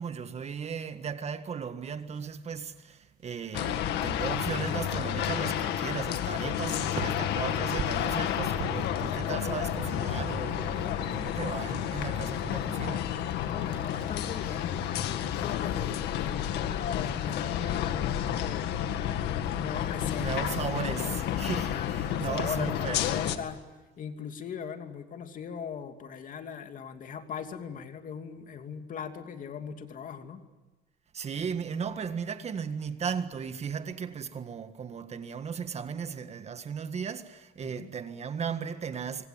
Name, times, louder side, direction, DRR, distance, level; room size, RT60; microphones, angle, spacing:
voice 1, 0.0-13.1 20.2-23.1 31.1-39.3, right 6 dB, 40° right, 1.8 m, -36 dB
sound 1, 1.8-17.2, right 8 dB, 55° right, 2.0 m, -47 dB
sound 2, 3.5-23.4, left 10 dB, 80° left, 2.0 m, -31 dB
voice 2, 13.4-18.7 19.5-20.4 21.6-23.6 24.0-30.4 37.6-37.9, left 7 dB, 50° left, 2.8 m, -39 dB
25.0 x 24.5 x 8.9 m
cardioid pair, 110°, 17 cm